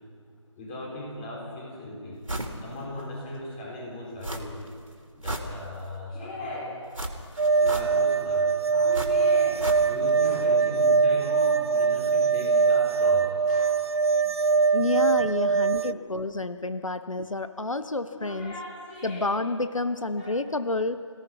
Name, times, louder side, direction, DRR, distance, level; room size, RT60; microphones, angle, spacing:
voice 1, 0.6-4.6 5.1-6.8 7.6-13.7 15.5-16.1 18.1-19.4 20.2-20.3, left 1 dB, 15° left, -4 dB, 5.8 m, -38 dB
sound 1, 2.3-2.6 3.0-3.1 4.2-4.7 5.0-6.0 6.9-8.2 8.9-10.2 10.4-10.5, right 1 dB, 85° right, 3.6 m, -34 dB
sound 2, 7.4-15.9, right 5 dB, 55° right, 0.6 m, -22 dB
voice 2, 14.7-18.5 19.0-21.1, left 2 dB, 85° left, 11 dB, 1.0 m, -29 dB
27.5 x 17.5 x 5.9 m, 2.1 s
figure-of-eight pair, 160°, 16 cm